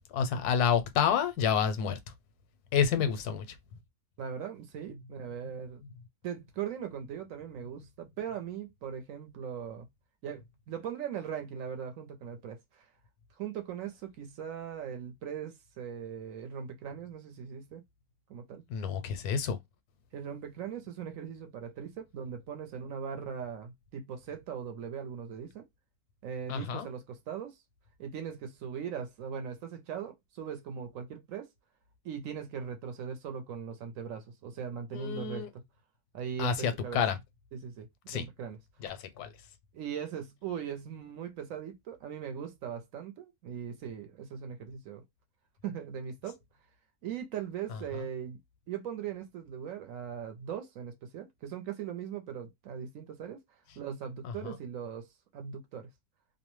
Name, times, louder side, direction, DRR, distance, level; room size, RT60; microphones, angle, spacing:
voice 1, 0.1-2.0 2.7-3.4 18.7-19.6 26.5-26.9 34.9-35.5 36.4-37.2 38.1-38.3 38.8-39.3 54.4-54.5, left 7 dB, 85° left, 1.1 m, -29 dB
voice 2, 4.2-5.8 6.2-9.9 10.2-12.9 13.4-17.8 18.3-18.6 20.1-25.7 26.2-27.6 28.0-31.5 32.0-35.6 36.1-37.0 37.5-38.6 39.7-45.0 45.6-46.4 47.0-48.4 48.7-53.4 53.8-55.9, right 8 dB, 70° right, 0.9 m, -39 dB
2.6 x 2.1 x 2.9 m
omnidirectional pair, 1.6 m